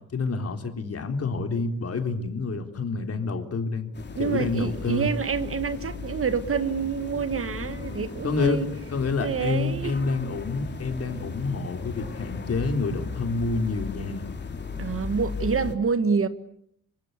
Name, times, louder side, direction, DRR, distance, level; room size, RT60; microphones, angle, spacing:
voice 1, 0.1-3.9 4.2-5.1 8.2-8.6 8.9-14.3, left 4 dB, 50° left, 3.9 m, -28 dB
sound 1, 3.9-15.8, left 4 dB, 35° left, 3.4 m, -36 dB
voice 2, 4.2-8.7 9.2-9.9 14.8-16.3, right 6 dB, 45° right, 1.9 m, -27 dB
26.5 x 25.0 x 8.3 m
cardioid pair, 105°, 31 cm